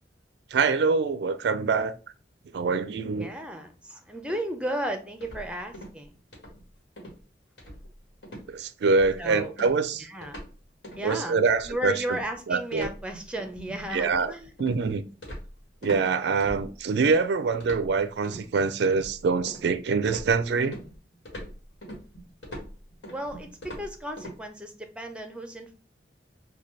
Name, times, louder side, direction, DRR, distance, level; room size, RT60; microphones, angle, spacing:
voice 1, 0.5-1.9 2.5-3.3 8.5-10.1 11.0-12.0 12.5-12.9 13.9-14.3 14.6-15.0 15.8-20.8, right 4 dB, 65° right, 0.3 m, -25 dB
voice 2, 3.2-6.1 9.2-9.5 10.0-10.4 11.0-11.4 11.6-14.5 23.1-25.8, right 1 dB, 5° right, 0.5 m, -34 dB
sound 1, 5.2-6.0 6.3-6.6 7.0-7.2 7.6-8.0 8.2-8.5 8.9-9.2 9.6-10.5 10.8-11.1 11.4-16.0 16.4-17.2 17.6-18.4 18.9-19.7 20.0-24.4, equal, 75° left, 1.4 m, -42 dB
4.1 x 2.2 x 3.1 m
head